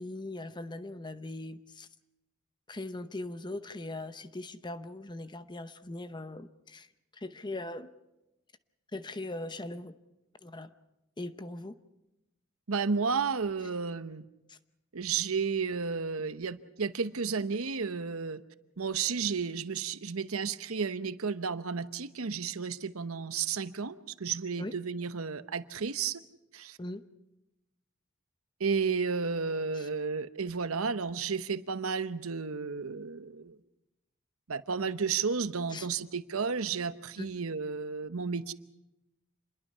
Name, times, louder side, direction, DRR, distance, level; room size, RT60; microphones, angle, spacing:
voice 1, 0.0-1.9 2.7-6.9 7.1-7.9 8.9-10.0 10.4-10.7 11.2-11.7 14.5-14.6 24.6-24.7 26.8-27.0 29.7-29.9 35.7-35.9 37.2-37.3, left 2 dB, 20° left, 0.8 m, -40 dB
voice 2, 12.7-14.2 14.9-18.4 18.8-23.9 24.2-26.2 26.5-26.8 28.6-33.6 34.5-38.5, right 5 dB, 80° right, 0.9 m, -32 dB
27.0 x 21.5 x 5.6 m
head